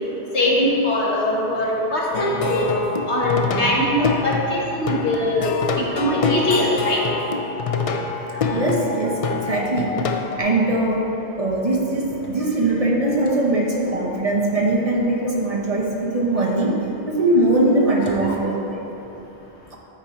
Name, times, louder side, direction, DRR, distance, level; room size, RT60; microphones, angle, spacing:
voice 1, 0.3-2.6 3.1-5.5 5.9-7.0 18.0-18.3, left 1 dB, 80° left, -4 dB, 1.5 m, -21 dB
Plucked string instrument, 2.1-10.4, left 4 dB, 60° left, 0.3 m, -26 dB
voice 2, 3.4-3.7 7.9-10.0 10.4-11.0 11.4-18.8, right 2 dB, 35° right, -2 dB, 0.9 m, -21 dB
9.2 x 4.4 x 4.2 m, 3.0 s
omnidirectional pair, 1.1 m